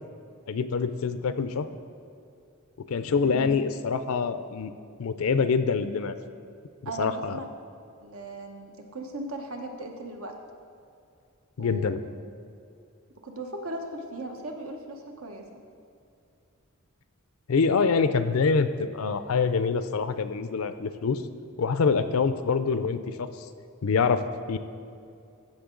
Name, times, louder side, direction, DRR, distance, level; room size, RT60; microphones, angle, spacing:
voice 1, 0.5-1.7 2.9-4.7 5.0-6.1 6.8-7.4 11.6-12.0 17.5-21.2 21.6-23.3 23.8-24.2 24.5-24.6, left 5 dB, 75° left, 11 dB, 0.5 m, -25 dB
voice 2, 3.2-3.6 6.8-7.5 8.0-10.3 11.6-12.1 13.2-15.6, right 1 dB, 75° right, 3 dB, 1.1 m, -37 dB
15.0 x 6.6 x 3.8 m, 2.5 s
head